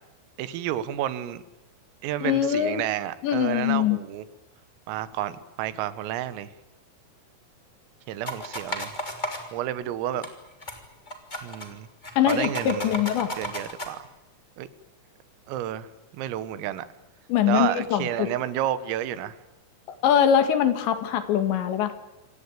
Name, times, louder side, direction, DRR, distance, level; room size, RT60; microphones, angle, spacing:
voice 1, 0.4-1.4 2.0-4.3 4.9-6.5 8.1-8.9 9.5-10.3 11.4-11.9 12.3-13.0 13.4-14.0 14.6-14.7 15.5-15.9 16.1-16.9 17.5-19.4, right 12 dB, 85° right, 14 dB, 3.9 m, -30 dB
voice 2, 2.2-2.8 3.2-4.0 12.2-13.3 17.3-18.3 20.0-21.9, left 9 dB, 65° left, 9 dB, 3.6 m, -23 dB
sound 1, 8.3-9.4 10.2-10.3 10.6-10.8 11.1-11.7 12.0-13.9, equal, 15° left, 2.1 m, -33 dB
27.0 x 18.5 x 8.9 m, 0.99 s
omnidirectional pair, 5.9 m